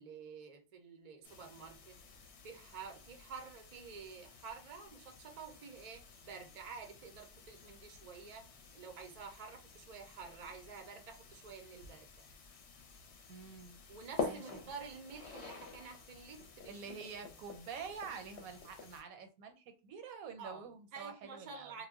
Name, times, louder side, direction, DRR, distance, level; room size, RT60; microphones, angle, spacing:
voice 1, 0.0-2.0 2.4-8.5 8.7-12.1 13.9-17.3 20.4-20.7 20.9-21.9, right 5 dB, 55° right, 0.4 m, -50 dB
sound 1, 1.2-19.0, left 5 dB, 60° left, 0.8 m, -49 dB
voice 2, 13.3-13.8 14.2-14.6 16.7-21.8, right 6 dB, 80° right, 1.0 m, -47 dB
2.3 x 2.1 x 3.4 m
omnidirectional pair, 1.5 m